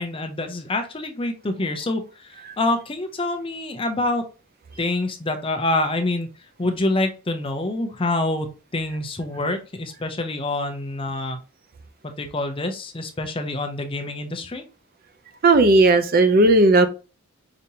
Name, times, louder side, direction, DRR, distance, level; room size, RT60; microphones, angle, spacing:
voice 1, 0.0-4.2 4.8-6.3 6.6-11.4 12.0-14.6, left 2 dB, 25° left, 0.6 m, -26 dB
voice 2, 15.4-16.9, right 2 dB, 40° right, 0.5 m, -15 dB
5.0 x 2.8 x 2.7 m
head